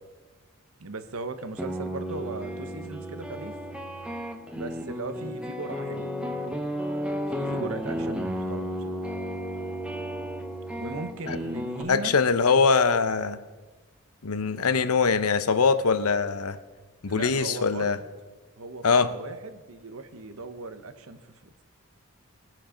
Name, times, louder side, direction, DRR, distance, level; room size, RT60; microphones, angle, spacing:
voice 1, 0.8-3.6 4.5-6.2 7.0-9.0 10.7-12.2 17.1-18.0 18.6-21.5, right 3 dB, 70° right, 10 dB, 1.0 m, -38 dB
sound 1, 1.4-11.8, equal, 5° right, 0.9 m, -33 dB
voice 2, 11.9-13.4 14.2-16.6 17.0-18.0 18.8-19.1, left 5 dB, 80° left, 12 dB, 0.7 m, -22 dB
19.5 x 7.5 x 5.1 m, 1.3 s
head